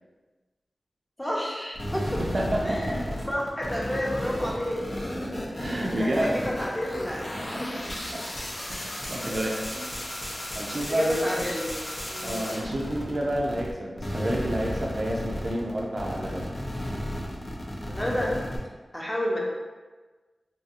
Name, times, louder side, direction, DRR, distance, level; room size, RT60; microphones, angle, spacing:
voice 1, 1.2-2.2 2.6-5.5 6.0-7.3 7.6-7.7 9.3-9.5 9.7-9.8 10.7-11.8 12.1-12.5 17.9-18.4 18.9-19.4, equal, 10° left, -4 dB, 0.6 m, -31 dB
sound 1, 1.8-13.7 14.0-18.6, left 1 dB, 60° left, 0.5 m, -34 dB
voice 2, 2.2-3.1 5.6-6.5 7.4-7.9 8.1-8.3 8.7-9.6 10.5-11.5 12.2-16.5, right 1 dB, 55° right, -2 dB, 0.4 m, -29 dB
2.7 x 2.6 x 2.5 m, 1.3 s
wide cardioid pair, 60°, 0 cm